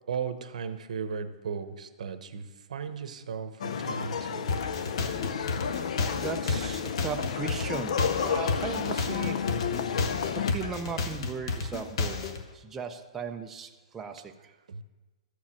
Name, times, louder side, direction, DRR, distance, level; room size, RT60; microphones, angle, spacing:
voice 1, 0.1-4.5 14.7-14.8, right 6 dB, 85° right, 10 dB, 0.9 m, -36 dB
sound 1, 3.6-10.5, left 7 dB, 70° left, 0.6 m, -31 dB
sound 2, 4.5-12.4, left 4 dB, 50° left, 1.0 m, -31 dB
voice 2, 6.1-9.4 10.3-12.2 12.5-14.5, right 5 dB, 10° right, 3 dB, 0.4 m, -37 dB
13.0 x 4.8 x 7.2 m, 1.2 s
hypercardioid pair, 175°, 4 cm